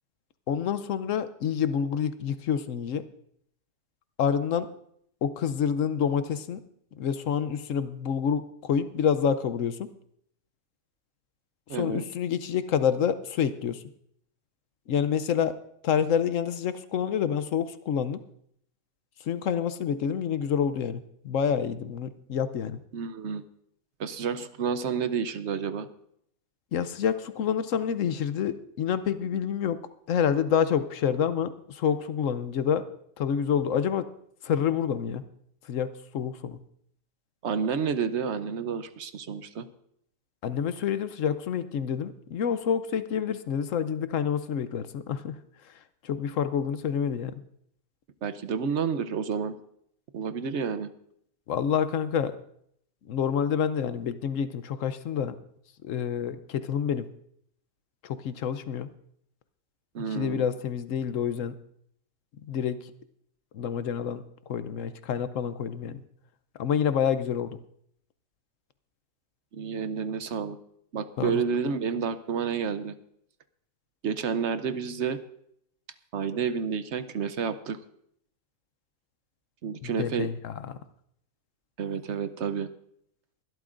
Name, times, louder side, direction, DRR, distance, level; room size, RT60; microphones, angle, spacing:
voice 1, 0.5-3.0 4.2-4.7 5.2-6.6 7.0-9.9 11.7-13.8 14.9-15.6 15.8-18.2 19.3-22.8 26.7-29.8 30.1-32.8 33.2-34.1 34.4-35.2 35.7-36.6 40.4-45.4 46.0-47.3 51.5-52.4 53.1-55.4 55.8-57.1 58.0-58.9 60.1-61.5 62.5-62.8 63.5-66.0 66.6-67.6 71.2-71.4 79.8-80.7, left 8 dB, 70° left, 12 dB, 1.0 m, -28 dB
voice 2, 11.7-12.0 22.9-23.4 24.0-25.9 37.4-39.7 48.2-49.5 50.1-50.9 59.9-60.5 69.5-70.6 70.9-72.9 74.0-75.2 76.1-77.8 79.6-80.3 81.8-82.7, right 6 dB, 60° right, 11 dB, 0.9 m, -30 dB
22.5 x 12.5 x 2.5 m, 0.69 s
omnidirectional pair, 1.5 m